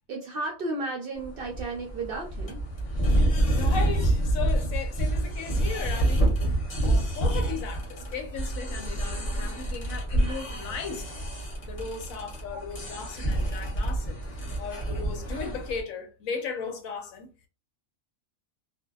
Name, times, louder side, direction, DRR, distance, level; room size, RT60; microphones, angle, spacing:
voice 1, 0.1-2.6 10.2-10.4 10.7-10.8 12.5-12.6, right 2 dB, 60° right, 0.6 m, -34 dB
sound 1, 1.2-15.8, right 1 dB, 30° left, 0.7 m, -27 dB
voice 2, 3.1-14.2 14.6-17.3, left 5 dB, 90° left, 1.1 m, -37 dB
2.6 x 2.2 x 2.2 m
omnidirectional pair, 1.4 m